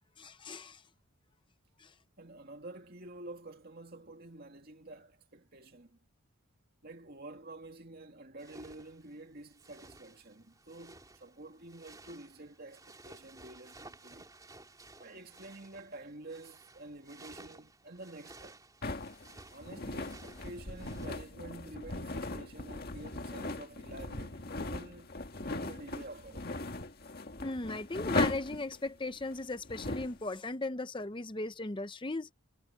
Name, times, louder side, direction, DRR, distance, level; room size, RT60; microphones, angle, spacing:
voice 1, 0.2-0.8 1.8-1.9 27.4-32.3, left 2 dB, 20° left, 0.7 m, -37 dB
voice 2, 2.2-6.0 6.8-14.3 15.0-18.6 19.5-25.1 25.4-26.5, right 2 dB, 45° right, 2.5 m, -49 dB
sound 1, 8.4-21.1, right 2 dB, 15° right, 3.7 m, -55 dB
sound 2, 18.8-30.2, left 2 dB, 45° left, 1.9 m, -38 dB
head